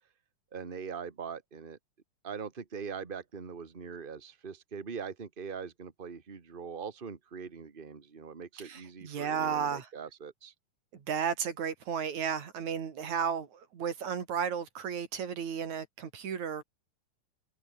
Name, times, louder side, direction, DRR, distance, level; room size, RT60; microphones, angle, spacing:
voice 1, 0.5-1.8 2.2-10.5, right 6 dB, 25° right, 1.3 m, -42 dB
voice 2, 8.6-9.9 10.9-16.6, right 7 dB, 65° right, 4.0 m, -33 dB
omnidirectional pair, 3.7 m